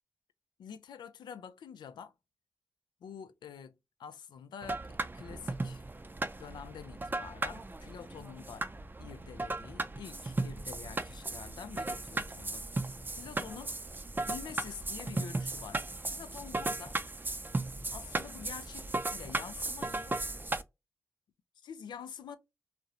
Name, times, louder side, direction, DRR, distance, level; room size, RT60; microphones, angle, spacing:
voice 1, 0.6-2.1 3.0-4.8 5.1-5.8 6.4-8.7 9.0-12.6 13.1-13.8 14.3-15.8 16.1-17.0 17.9-20.2 21.6-22.4, left 7 dB, 90° left, 0.3 m, -47 dB
sound 1, 4.6-20.6, right 2 dB, 25° right, 0.4 m, -36 dB
2.5 x 2.0 x 2.8 m
cardioid pair, 50°, 7 cm